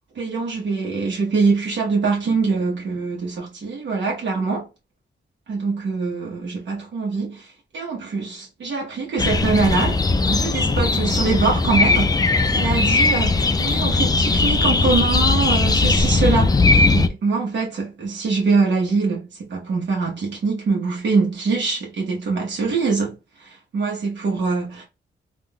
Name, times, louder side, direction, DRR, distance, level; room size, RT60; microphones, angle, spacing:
voice 1, 0.1-4.7 5.5-7.5 7.7-10.0 10.3-16.6 16.9-24.8, right 4 dB, 75° right, 1.0 m, -23 dB
sound 1, 9.2-17.1, left 3 dB, 20° left, 0.3 m, -18 dB
3.6 x 2.5 x 2.2 m
wide cardioid pair, 105°, 19 cm